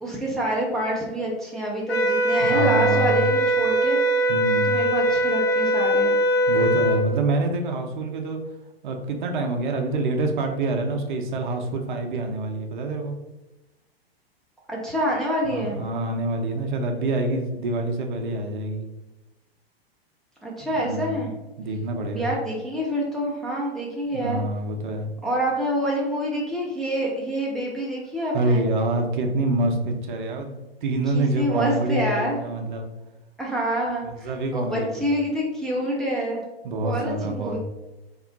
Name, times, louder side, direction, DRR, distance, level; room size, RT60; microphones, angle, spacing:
voice 1, 0.0-4.0 4.7-6.1 14.7-15.8 20.4-21.3 22.1-24.4 25.2-28.7 31.1-32.4 33.4-36.4 36.8-37.6, right 1 dB, ahead, -5 dB, 0.4 m, -27 dB
sound 1, 1.9-7.0, right 1 dB, 80° left, 0.6 m, -21 dB
voice 2, 2.4-3.3 4.3-4.8 6.5-8.4 8.8-13.2 15.5-18.8 20.7-21.3 21.6-22.3 24.1-25.1 28.3-32.9 34.2-35.0 36.6-37.6, right 2 dB, 55° right, 3 dB, 0.6 m, -26 dB
3.0 x 2.4 x 3.8 m, 1.1 s
figure-of-eight pair, 95°, 31 cm